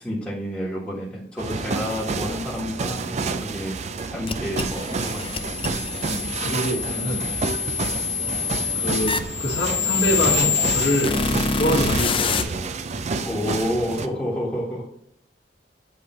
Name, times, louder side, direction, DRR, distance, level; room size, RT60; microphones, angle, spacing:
voice 1, 0.0-5.9 13.2-14.9, equal, 5° left, -9 dB, 1.4 m, -30 dB
sound 1, 1.4-14.1, right 4 dB, 40° right, 0.4 m, -29 dB
sound 2, 4.3-12.4, left 6 dB, 30° left, 0.4 m, -26 dB
voice 2, 6.1-7.3 8.7-11.1 11.5-12.6, equal, 65° left, -7 dB, 1.6 m, -25 dB
7.9 x 3.3 x 4.2 m, 0.67 s
head